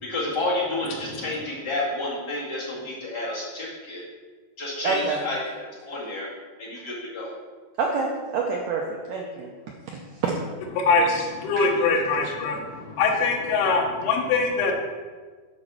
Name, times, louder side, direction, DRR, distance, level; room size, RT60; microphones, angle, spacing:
voice 1, 0.0-4.0 4.6-6.3 6.6-7.3, left 2 dB, 40° left, -7 dB, 1.7 m, -30 dB
voice 2, 4.8-5.2 7.8-9.5 10.2-10.4 11.6-11.7, right 4 dB, 90° right, 0 dB, 1.8 m, -26 dB
voice 3, 10.8-14.7, left 4 dB, 80° left, 1 dB, 3.0 m, -23 dB
9.1 x 4.3 x 6.1 m, 1.4 s
omnidirectional pair, 4.7 m